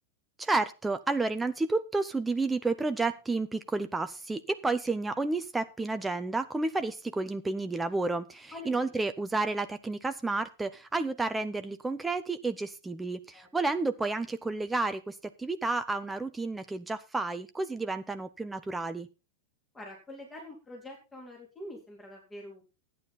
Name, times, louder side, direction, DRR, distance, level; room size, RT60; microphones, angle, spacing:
voice 1, 0.4-19.1, right 3 dB, 10° right, 9 dB, 0.7 m, -31 dB
voice 2, 8.5-8.9 13.3-13.5 19.7-22.6, left 1 dB, 15° left, 0 dB, 3.7 m, -45 dB
12.5 x 9.4 x 4.2 m, 0.29 s
figure-of-eight pair, 90°, 0 cm